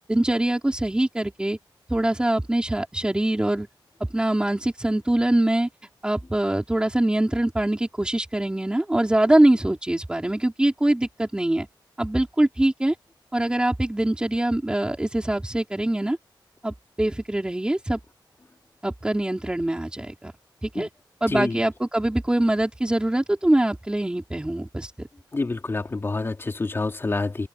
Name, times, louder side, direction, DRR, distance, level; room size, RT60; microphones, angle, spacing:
voice 1, 0.1-1.6 1.9-3.7 4.1-5.7 6.0-11.7 12.0-12.9 13.3-16.2 16.6-18.0 18.8-20.3 20.6-20.9 21.2-25.1, right 1 dB, 10° right, 4.4 m, -23 dB
voice 2, 21.3-21.6 25.3-27.5, left 3 dB, 30° left, 3.4 m, -27 dB
wide cardioid pair, 175°, 8 cm